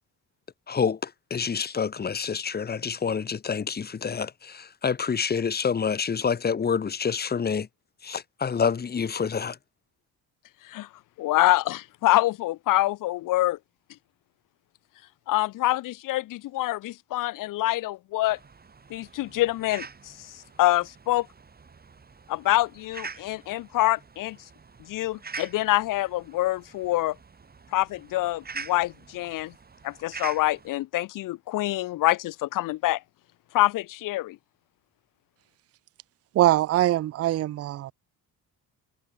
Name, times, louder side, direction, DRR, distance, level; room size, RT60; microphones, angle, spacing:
voice 1, 0.7-1.0 1.3-7.7 8.0-9.6, left 6 dB, 25° left, 1.4 m, -27 dB
voice 2, 11.2-13.6 15.3-18.4 18.9-19.9 20.6-21.3 22.3-24.4 24.9-27.2 27.7-29.5 29.8-33.0 33.5-34.4, left 16 dB, 55° left, 0.5 m, -25 dB
sound 1, 18.3-30.7, right 5 dB, 25° right, 7.9 m, -44 dB
voice 3, 36.3-37.9, right 14 dB, 40° right, 0.5 m, -22 dB
cardioid pair, 165°, 38 cm